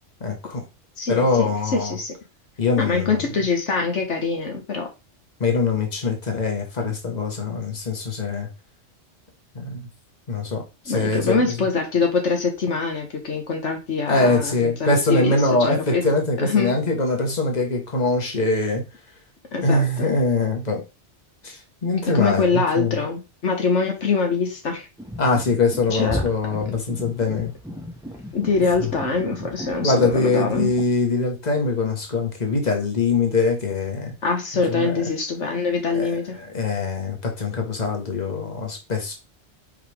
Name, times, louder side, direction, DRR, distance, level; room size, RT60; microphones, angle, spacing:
voice 1, 0.2-0.6 1.1-1.9 2.6-3.3 5.4-8.5 9.5-9.9 10.3-11.5 14.1-18.8 19.6-20.8 21.4-23.0 25.2-27.5 28.8-28.9 29.8-34.1 34.7-35.0 35.9-39.1, left 3 dB, 35° left, 1 dB, 1.7 m, -23 dB
voice 2, 1.0-2.1 2.8-4.9 10.9-16.0 16.4-16.7 19.5-20.1 22.1-24.9 25.9-26.2 28.3-30.7 34.2-36.4, left 4 dB, 75° left, 3 dB, 1.6 m, -24 dB
sound 1, 25.0-30.8, left 1 dB, 5° right, 1.1 m, -35 dB
5.8 x 5.0 x 3.5 m, 0.27 s
omnidirectional pair, 1.2 m